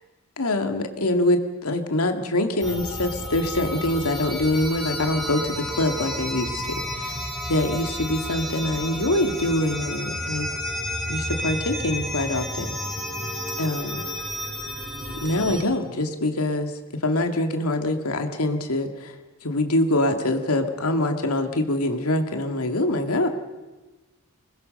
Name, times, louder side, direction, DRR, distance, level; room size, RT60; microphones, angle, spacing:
voice 1, 0.4-7.2 7.5-10.5 11.1-12.7 13.6-14.0 15.1-16.7 17.0-19.1 19.4-23.3, left 1 dB, 90° left, 5 dB, 2.2 m, -24 dB
sound 1, 2.6-15.6, left 1 dB, ahead, 3.3 m, -31 dB
26.0 x 21.0 x 6.6 m, 1.2 s
head